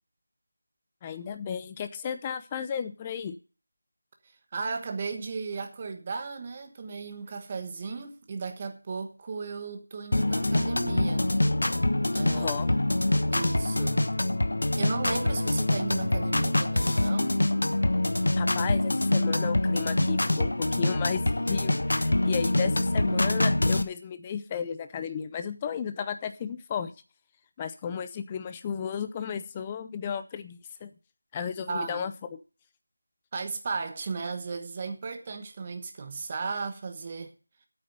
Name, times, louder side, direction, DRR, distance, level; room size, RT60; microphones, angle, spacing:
voice 1, 1.0-3.4 12.3-12.7 18.4-26.9 27.6-30.9 31.3-32.4, left 7 dB, 15° left, 0.6 m, -34 dB
voice 2, 4.5-11.3 12.1-12.6 13.3-14.1 14.8-17.4 31.7-32.1 33.3-37.3, right 4 dB, 20° right, 1.2 m, -35 dB
sound 1, 10.1-23.8, left 1 dB, 70° left, 1.2 m, -25 dB
8.6 x 8.6 x 7.8 m
figure-of-eight pair, 175°, 0 cm